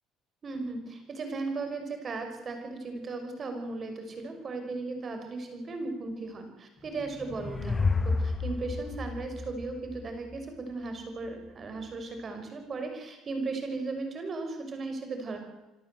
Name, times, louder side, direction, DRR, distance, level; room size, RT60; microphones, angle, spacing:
voice 1, 0.4-15.4, right 3 dB, 40° right, 6 dB, 5.9 m, -36 dB
sound 1, 6.9-10.3, left 4 dB, 20° left, 1.3 m, -31 dB
26.5 x 12.5 x 7.9 m, 1.1 s
supercardioid pair, 90°, 0 cm